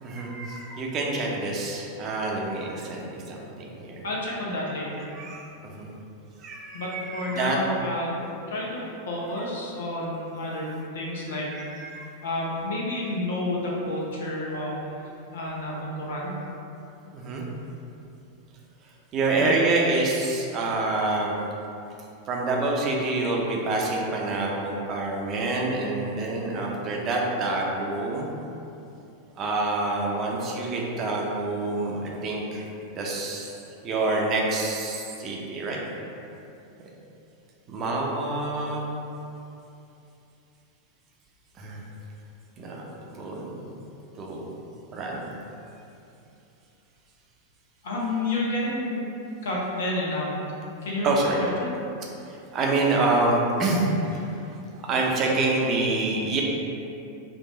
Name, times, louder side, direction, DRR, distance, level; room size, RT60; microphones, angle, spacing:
voice 1, 0.0-4.0 5.2-5.4 5.8-5.9 6.4-7.6 11.5-12.1 17.1-17.5 19.1-21.4 22.3-28.3 29.4-32.7 32.9-33.5 33.8-35.8 37.7-38.8 41.6-41.8 42.6-42.8 43.1-43.7 44.2-44.5 44.9-45.3 51.0-51.4 52.3-53.9 54.8-56.4, right 2 dB, 35° right, -2 dB, 0.7 m, -27 dB
voice 2, 4.0-5.1 6.7-8.1 8.5-11.5 12.2-14.8 15.3-16.3 19.3-19.5 47.8-49.0 49.4-50.4 50.8-51.1 51.4-51.7, left 1 dB, 65° left, -4 dB, 1.0 m, -30 dB
4.6 x 2.7 x 3.9 m, 2.8 s
figure-of-eight pair, 90°, 0 cm